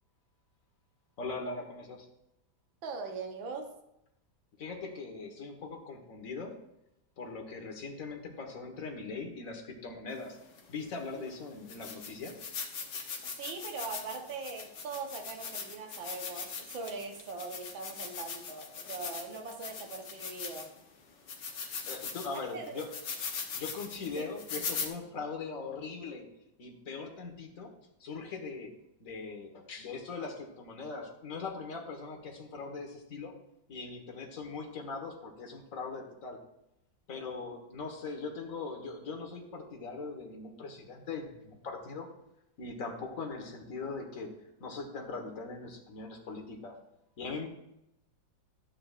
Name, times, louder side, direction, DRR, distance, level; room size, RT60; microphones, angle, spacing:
voice 1, 1.2-2.1 4.6-6.6 7.2-10.4 10.7-12.4 21.8-22.9 23.5-26.3 26.6-27.7 28.0-28.7 29.0-33.3 33.7-36.4 37.1-42.1 42.6-44.3 44.6-46.7 47.2-47.5, left 4 dB, 45° left, 2 dB, 1.7 m, -40 dB
voice 2, 2.8-3.8 11.1-11.3 13.2-20.7 22.3-22.8 24.2-24.3, right 4 dB, 85° right, 4 dB, 1.8 m, -41 dB
sound 1, 10.6-10.7 11.3-11.4 11.7-20.8 21.3-24.9, left 5 dB, 70° left, 1.7 m, -40 dB
12.5 x 8.5 x 2.5 m, 0.85 s
omnidirectional pair, 2.0 m